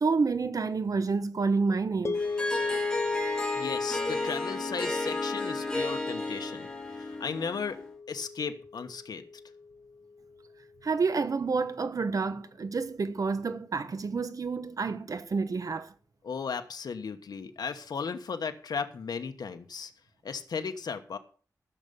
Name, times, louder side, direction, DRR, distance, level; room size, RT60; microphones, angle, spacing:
voice 1, 0.0-2.2 10.8-15.9, right 4 dB, 60° right, 1.2 m, -29 dB
sound 1, 2.0-10.3, left 4 dB, 40° left, 0.5 m, -36 dB
Harp, 2.1-7.9, left 2 dB, 10° left, 3.6 m, -33 dB
voice 2, 3.5-7.8 8.1-9.2 16.2-19.9 20.2-21.2, left 5 dB, 85° left, 1.1 m, -35 dB
15.0 x 6.8 x 6.8 m
wide cardioid pair, 85°, 7 cm